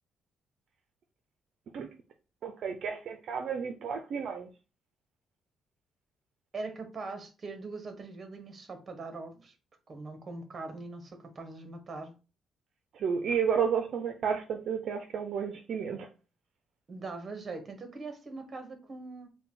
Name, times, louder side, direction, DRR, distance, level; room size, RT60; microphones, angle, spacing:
voice 1, 2.4-4.5 12.9-16.1, right 7 dB, 65° right, 0.5 m, -31 dB
voice 2, 6.5-9.5 9.9-12.1 16.9-19.3, right 3 dB, 35° right, 1.0 m, -41 dB
4.1 x 2.2 x 3.7 m
cardioid pair, 90°, 0 cm